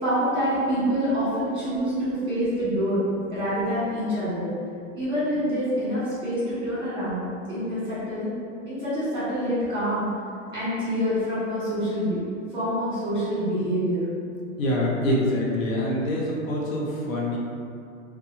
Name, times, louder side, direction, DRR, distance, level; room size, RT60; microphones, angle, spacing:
voice 1, 0.0-3.0 3.3-4.5 4.9-8.3 8.6-10.1 10.5-12.2 12.5-14.0, equal, 15° right, -12 dB, 1.4 m, -26 dB
voice 2, 14.6-17.4, left 1 dB, 85° left, -3 dB, 0.7 m, -25 dB
2.7 x 2.3 x 2.5 m, 2.4 s
hypercardioid pair, 130°, 39 cm